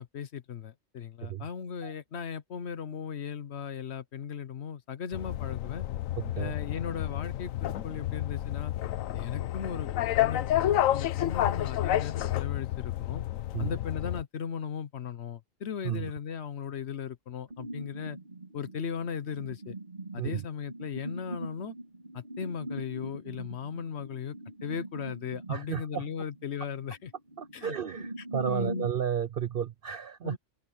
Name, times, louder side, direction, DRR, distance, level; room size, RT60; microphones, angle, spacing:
voice 1, 0.0-5.8 6.3-8.7 9.1-9.9 10.2-13.2 13.6-18.2 18.5-19.8 20.1-21.7 22.1-24.3 24.6-27.1 27.5-27.8 28.2-28.9 30.2-30.4, left 7 dB, 60° left, 1.0 m, -37 dB
sound 1, 5.1-14.2, left 13 dB, 85° left, 1.1 m, -30 dB
sound 2, 17.5-28.9, right 1 dB, 40° right, 3.7 m, -42 dB
voice 2, 25.5-26.0 27.4-30.4, right 8 dB, 60° right, 0.6 m, -32 dB
open air
omnidirectional pair, 1.3 m